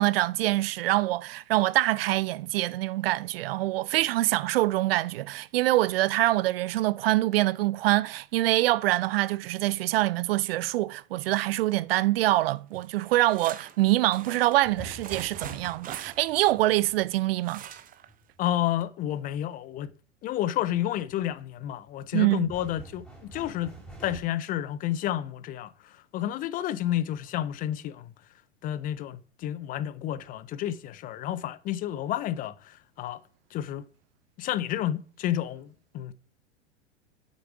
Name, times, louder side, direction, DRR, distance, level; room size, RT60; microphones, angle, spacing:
voice 1, 0.0-17.6 22.1-22.5, right 17 dB, 55° right, 0.5 m, -25 dB
sound 1, 12.8-17.1 17.4-18.1 18.4-18.5 18.8-18.9, right 10 dB, 25° right, 0.8 m, -43 dB
sound 2, 14.6-18.5 21.0-21.4 21.9-24.2, right 2 dB, ahead, 3.5 m, -46 dB
voice 2, 18.4-19.9 20.2-23.7 24.0-28.1 28.6-33.2 33.5-33.8 34.4-36.1, left 12 dB, 25° left, 0.4 m, -30 dB
8.0 x 6.7 x 6.0 m
hypercardioid pair, 100°, 36 cm